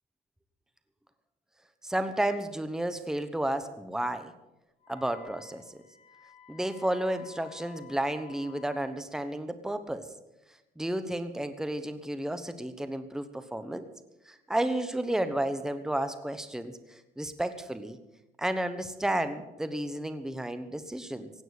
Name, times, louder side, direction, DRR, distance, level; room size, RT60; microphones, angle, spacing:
voice 1, 1.8-4.3 4.9-5.8 6.5-10.1 10.8-13.9 14.3-16.8 17.2-18.0 18.4-21.3, right 1 dB, 5° right, 10 dB, 1.1 m, -32 dB
Wind instrument woodwind instrument, 4.8-8.9, left 10 dB, 40° left, 5.0 m, -53 dB
16.5 x 9.1 x 8.2 m, 0.97 s
cardioid pair, 110°, 17 cm